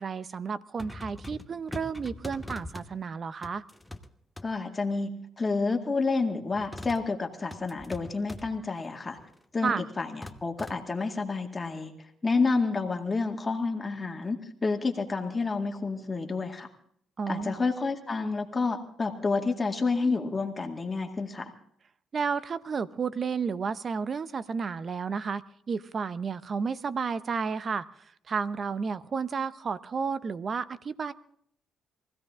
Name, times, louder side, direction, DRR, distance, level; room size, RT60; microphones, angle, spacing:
voice 1, 0.0-3.6 9.6-9.8 17.2-17.6 22.1-31.1, right 5 dB, 45° right, 15 dB, 0.8 m, -32 dB
sound 1, 0.8-2.9 3.4-4.1 4.4-4.5 6.5-7.0 7.5-8.5 9.1-9.4 10.2-10.8, left 1 dB, 5° left, 1.1 m, -42 dB
voice 2, 4.4-9.2 9.5-11.9 12.2-16.7 17.3-21.5, left 4 dB, 25° left, 4 dB, 2.1 m, -29 dB
23.0 x 16.0 x 3.7 m, 0.66 s
cardioid pair, 90°, 0 cm